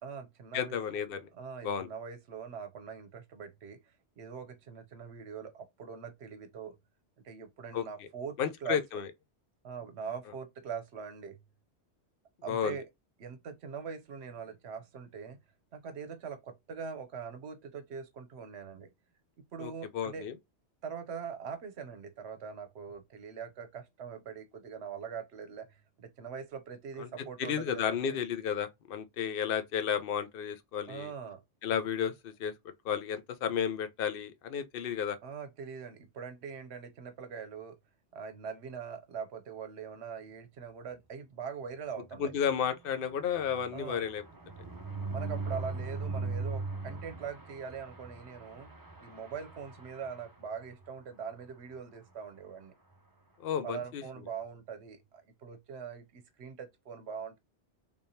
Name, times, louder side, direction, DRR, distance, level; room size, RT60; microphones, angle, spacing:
voice 1, 0.0-0.8 1.3-3.8 4.2-6.8 7.2-8.8 9.6-11.4 12.4-12.9 13.2-15.4 15.7-18.9 19.4-20.3 20.8-28.2 30.9-31.4 35.2-37.8 38.1-42.3 43.7-44.0 45.1-48.7 49.0-52.7 53.6-57.4, right 6 dB, 75° right, 1.0 m, -42 dB
voice 2, 0.5-1.2 1.6-1.9 7.7-7.8 8.4-9.1 12.5-12.8 19.6-20.3 27.0-27.1 27.4-31.1 31.6-32.5 32.8-35.2 42.2-44.2 53.4-54.0, left 8 dB, 60° left, 0.8 m, -32 dB
sound 1, 42.1-50.9 51.3-51.5 51.7-51.8 52.1-52.4, right 3 dB, 25° right, 0.5 m, -40 dB
3.5 x 3.3 x 2.7 m
omnidirectional pair, 1.1 m